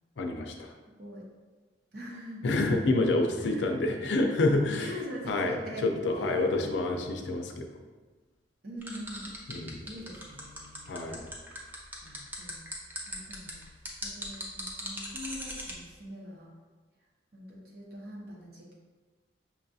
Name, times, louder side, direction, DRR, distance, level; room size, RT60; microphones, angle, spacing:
voice 1, 0.2-0.7 2.4-4.9 5.3-5.6 5.8-7.7 9.5-9.8 10.9-11.3, left 2 dB, 75° left, 3 dB, 0.5 m, -28 dB
voice 2, 0.8-1.3 1.9-2.6 3.3-3.7 4.8-6.6 8.6-9.3 9.8-10.9 12.0-12.6 13.1-13.6 14.0-16.5 17.3-18.7, equal, 55° right, -4 dB, 1.0 m, -43 dB
sound 1, 8.8-15.7, equal, 10° right, 0.5 m, -39 dB
5.8 x 2.4 x 2.6 m, 1.3 s
head